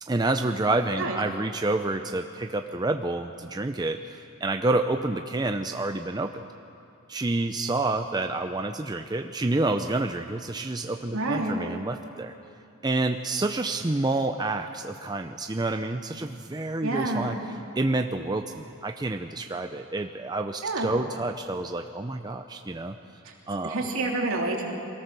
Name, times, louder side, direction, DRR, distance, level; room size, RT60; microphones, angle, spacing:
voice 1, 0.0-6.4 7.1-12.3 12.8-17.4 17.8-23.0 23.5-23.8, right 2 dB, 20° right, 6 dB, 0.5 m, -28 dB
voice 2, 11.1-11.6 16.8-17.3 20.6-20.9 23.2-23.3 23.6-24.6, right 2 dB, 70° right, 0 dB, 3.0 m, -28 dB
24.0 x 17.5 x 6.8 m, 2.5 s
head